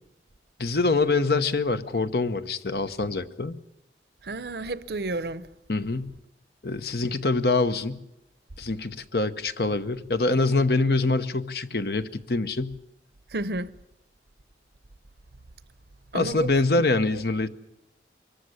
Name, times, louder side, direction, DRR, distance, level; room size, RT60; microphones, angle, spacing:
voice 1, 0.6-3.6 5.7-6.1 6.6-8.0 8.6-12.8 16.1-17.5, left 3 dB, 60° left, 1.0 m, -25 dB
voice 2, 4.2-5.5 13.3-13.7 16.1-16.8 17.1-17.2, right 2 dB, 65° right, 0.8 m, -32 dB
23.5 x 14.5 x 9.7 m
head